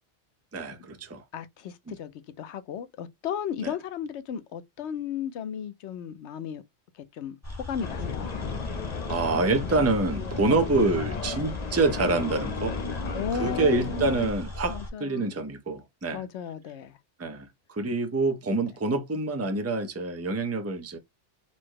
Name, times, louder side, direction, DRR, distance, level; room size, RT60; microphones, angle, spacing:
voice 1, 0.5-1.2 1.9-2.0 3.6-3.7 9.1-12.8 13.3-16.2 17.2-21.0, right 3 dB, 15° right, 0.6 m, -26 dB
voice 2, 1.3-2.1 2.4-6.6 6.9-8.3 10.5-10.6 13.1-14.2 14.7-15.2 16.1-17.0, left 8 dB, 75° left, 1.0 m, -35 dB
sound 1, 7.4-14.9, left 2 dB, 15° left, 0.9 m, -38 dB
sound 2, 7.8-14.3, left 5 dB, 45° left, 0.7 m, -34 dB
4.3 x 2.1 x 4.6 m
omnidirectional pair, 1.2 m